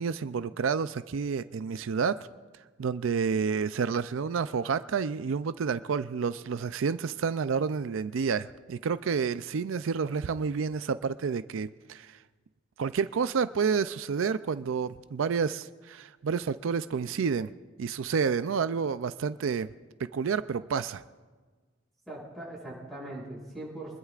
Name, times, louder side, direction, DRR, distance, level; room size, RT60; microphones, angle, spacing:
voice 1, 0.0-2.3 2.8-12.2 12.8-17.5 17.8-19.7 20.0-21.0, right 6 dB, 80° right, 13 dB, 0.4 m, -29 dB
voice 2, 22.1-24.0, right 1 dB, ahead, -6 dB, 6.6 m, -40 dB
25.0 x 21.0 x 2.4 m, 1.4 s
head